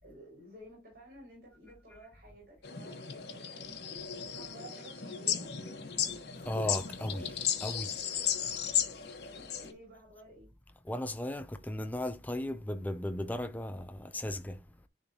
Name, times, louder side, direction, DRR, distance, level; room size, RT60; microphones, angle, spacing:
voice 1, 0.0-3.7 4.3-5.5 9.3-10.5, right 1 dB, 55° right, 4.6 m, -53 dB
sound 1, 2.6-9.7, left 8 dB, 65° left, 1.2 m, -35 dB
voice 2, 6.4-8.1 10.8-14.6, left 1 dB, 10° left, 0.4 m, -36 dB
10.5 x 3.5 x 2.8 m
head